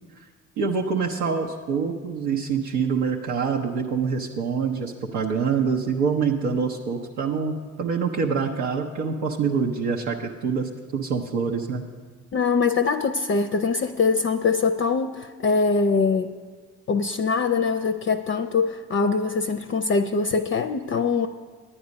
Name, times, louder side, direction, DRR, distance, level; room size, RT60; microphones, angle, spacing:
voice 1, 0.6-11.8, right 5 dB, 85° right, -1 dB, 0.7 m, -25 dB
voice 2, 12.3-16.3 16.9-21.3, left 4 dB, 35° left, 8 dB, 0.5 m, -23 dB
9.8 x 9.4 x 5.1 m, 1.5 s
hypercardioid pair, 45°, 36 cm